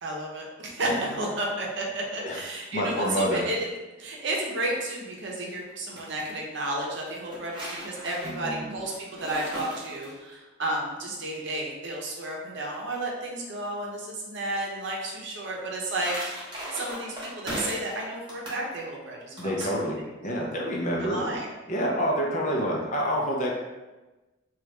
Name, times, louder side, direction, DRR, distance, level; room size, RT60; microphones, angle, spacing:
voice 1, 0.0-3.7 4.0-16.1 16.7-19.7 21.0-21.5, right 1 dB, 65° right, -2 dB, 0.7 m, -32 dB
voice 2, 2.7-3.4 8.2-8.6 19.4-21.2 21.7-23.5, equal, 40° left, -2 dB, 0.6 m, -28 dB
sound 1, 5.7-6.3 7.1-10.4 15.5-18.0 18.3-18.6 19.4-19.8, right 1 dB, 25° right, 0.9 m, -38 dB
3.0 x 2.4 x 3.1 m, 1.1 s
head